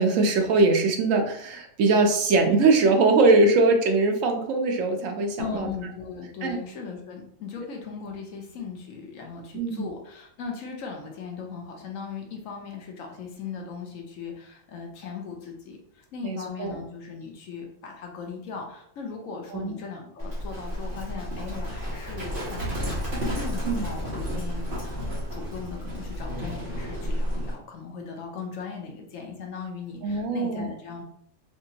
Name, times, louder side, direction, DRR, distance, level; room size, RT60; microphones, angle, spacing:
voice 1, 0.0-5.7 6.4-6.6 9.5-9.9 16.2-16.8 19.5-19.8 23.6-23.8 30.0-30.7, right 3 dB, 75° right, 4 dB, 1.0 m, -22 dB
voice 2, 5.4-25.0 25.3-31.0, left 5 dB, 75° left, 1 dB, 1.1 m, -38 dB
Livestock farm animals working animals, 20.2-27.6, equal, 40° right, 1.4 m, -31 dB
3.4 x 2.9 x 2.8 m, 0.66 s
omnidirectional pair, 1.4 m